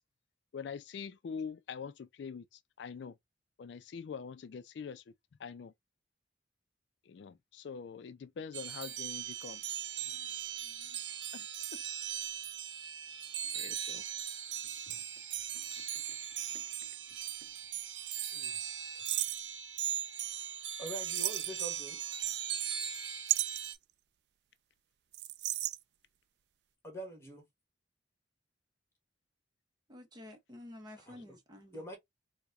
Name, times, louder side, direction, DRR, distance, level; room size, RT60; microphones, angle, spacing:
voice 1, 0.5-3.1 3.6-5.0 5.4-5.7 7.1-9.8 10.1-10.3 10.6-10.9 11.3-11.5 11.7-11.8 13.5-14.0 14.9-15.0, left 6 dB, 75° left, 0.3 m, -44 dB
Wind Chimes loud then soft melodic, 8.5-23.7, right 10 dB, 85° right, 0.7 m, -39 dB
sound 1, 13.4-13.5 14.5-17.2 17.4-17.5 19.1-19.5 21.1-21.9 23.3-23.8 25.1-25.8, right 15 dB, 65° right, 0.3 m, -35 dB
voice 2, 20.8-22.0 26.8-27.5 31.0-31.4 31.7-32.0, right 1 dB, 15° left, 1.4 m, -44 dB
voice 3, 29.9-32.0, left 1 dB, 25° right, 0.7 m, -51 dB
4.6 x 2.2 x 2.4 m
head